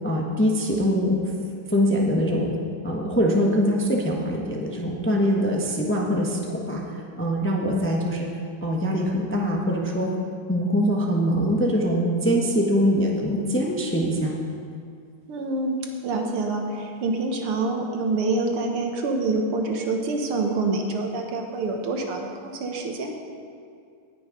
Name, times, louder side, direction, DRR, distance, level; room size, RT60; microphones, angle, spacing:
voice 1, 0.0-1.3 1.7-2.5 2.8-6.8 7.2-8.3 8.6-10.1 10.5-14.4, equal, 10° left, -1 dB, 0.5 m, -23 dB
voice 2, 15.3-23.1, right 3 dB, 80° right, 3 dB, 2.1 m, -26 dB
18.0 x 6.4 x 5.2 m, 2.4 s
omnidirectional pair, 2.4 m